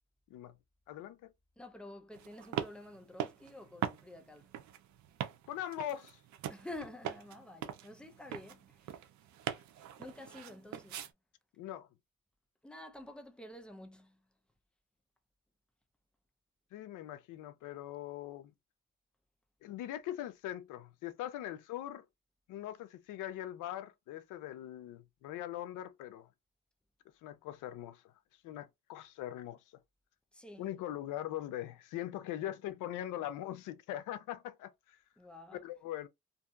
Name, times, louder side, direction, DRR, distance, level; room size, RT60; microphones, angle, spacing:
voice 1, 0.9-1.3 5.5-6.2 11.6-11.9 16.7-18.5 19.6-22.1 22.5-26.3 27.2-28.1 28.4-29.6 30.6-35.0 35.6-36.1, left 12 dB, 90° left, 0.5 m, -41 dB
voice 2, 1.6-4.5 6.5-9.1 10.0-11.1 12.6-14.3 30.3-30.7 35.2-35.6, left 1 dB, 5° left, 0.6 m, -49 dB
sound 1, 2.1-11.1, right 10 dB, 70° right, 0.6 m, -42 dB
2.7 x 2.5 x 2.3 m
cardioid pair, 90°, 30 cm